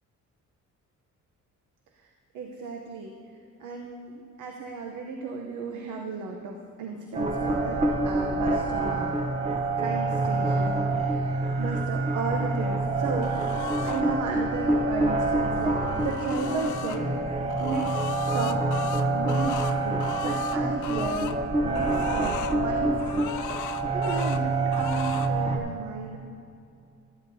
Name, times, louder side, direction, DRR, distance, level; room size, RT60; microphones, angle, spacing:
voice 1, 2.0-3.2 3.6-9.1 9.8-17.3 17.6-18.7 19.1-23.3 23.6-26.2, right 4 dB, 80° right, 2 dB, 0.9 m, -35 dB
sound 1, 7.1-25.6, right 2 dB, 20° right, 0.8 m, -26 dB
sound 2, 13.2-14.0 15.4-17.0 17.5-21.4 21.7-22.6 23.0-24.4 24.7-25.3, left 12 dB, 80° left, 0.5 m, -38 dB
13.0 x 10.5 x 2.7 m, 2.5 s
cardioid pair, 90°, 30 cm